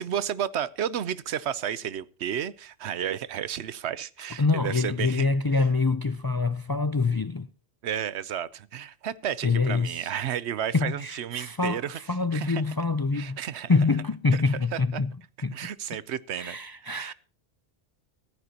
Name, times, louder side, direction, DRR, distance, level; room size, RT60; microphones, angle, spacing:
voice 1, 0.0-5.3 7.8-12.0 12.3-12.7 13.1-13.7 14.3-15.0 15.5-17.1, right 9 dB, 85° right, 1.0 m, -32 dB
voice 2, 4.4-7.5 9.4-10.3 10.7-13.4 13.7-15.1 15.4-15.6 16.3-17.1, left 4 dB, 35° left, 0.3 m, -25 dB
14.5 x 14.0 x 2.9 m
omnidirectional pair, 1.1 m